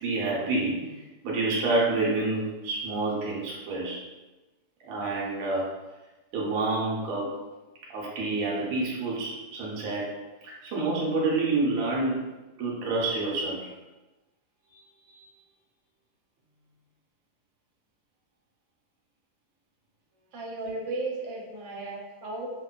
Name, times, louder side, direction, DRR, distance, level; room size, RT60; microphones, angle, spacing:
voice 1, 0.0-4.0 4.8-5.7 6.3-7.3 7.9-10.1 10.4-12.3 12.6-13.7 14.7-14.8 15.1-15.3, right 3 dB, 60° right, -5 dB, 1.0 m, -28 dB
voice 2, 20.3-22.5, right 2 dB, 80° right, -2 dB, 1.3 m, -35 dB
2.9 x 2.2 x 2.3 m, 1.1 s
omnidirectional pair, 2.0 m